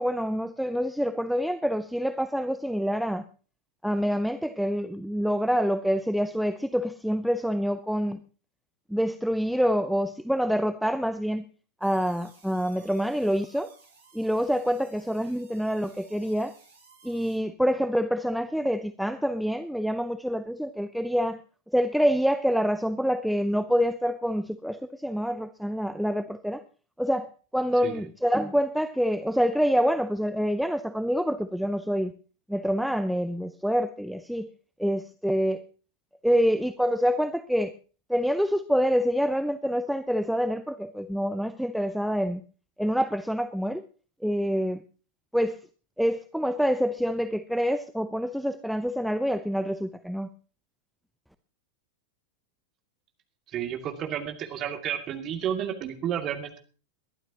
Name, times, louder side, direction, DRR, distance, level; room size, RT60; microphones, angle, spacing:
voice 1, 0.0-3.2 3.8-8.2 8.9-11.4 11.8-13.7 14.1-16.5 17.0-21.4 21.7-26.6 27.0-32.1 32.5-34.5 34.8-35.6 36.2-37.7 38.1-42.4 42.8-43.8 44.2-44.8 45.3-45.6 46.0-50.3, equal, ahead, 0.7 m, -26 dB
sound 1, 11.8-17.4, right 4 dB, 70° right, 5.2 m, -57 dB
voice 2, 53.5-56.6, right 9 dB, 30° right, 2.4 m, -31 dB
22.0 x 12.0 x 2.9 m
figure-of-eight pair, 90°, 0 cm